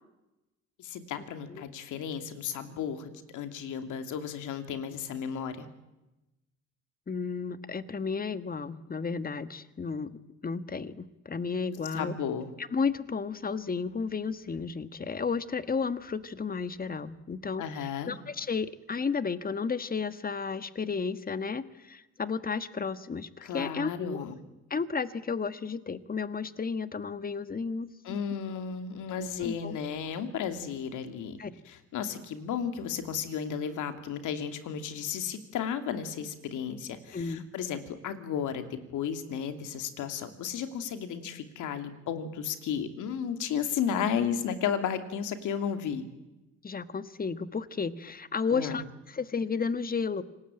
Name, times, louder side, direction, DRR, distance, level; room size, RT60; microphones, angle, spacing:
voice 1, 0.8-5.7 11.9-12.5 17.6-18.1 23.4-24.4 28.0-46.0 48.5-48.8, left 7 dB, 85° left, 8 dB, 2.7 m, -34 dB
voice 2, 7.1-10.1 10.4-12.1 12.6-24.3 24.7-28.2 29.4-29.8 31.4-31.5 37.1-37.5 46.6-50.2, left 5 dB, 30° left, 13 dB, 1.5 m, -33 dB
27.0 x 19.0 x 9.0 m, 0.99 s
cardioid pair, 90°, 30 cm